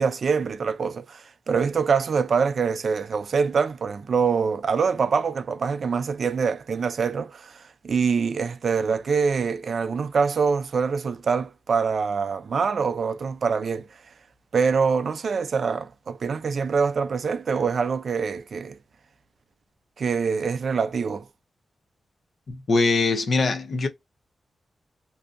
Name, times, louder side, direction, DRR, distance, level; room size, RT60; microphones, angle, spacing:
voice 1, 0.0-14.1 14.5-18.8 20.0-21.3, right 5 dB, 55° right, 0.3 m, -25 dB
voice 2, 22.5-23.9, left 3 dB, 50° left, 0.6 m, -22 dB
2.6 x 2.4 x 2.4 m
wide cardioid pair, 145°, 0 cm